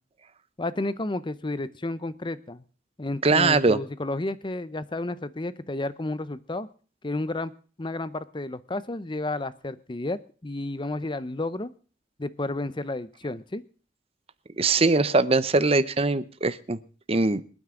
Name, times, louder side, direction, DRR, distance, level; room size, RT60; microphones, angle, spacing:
voice 1, 0.6-2.6 3.0-6.7 7.0-7.5 7.8-11.7 12.2-13.6, left 2 dB, 25° left, 15 dB, 0.7 m, -31 dB
voice 2, 3.2-3.8 14.6-16.8 17.1-17.4, right 3 dB, 30° right, 14 dB, 0.8 m, -21 dB
26.0 x 9.4 x 3.8 m, 0.39 s
head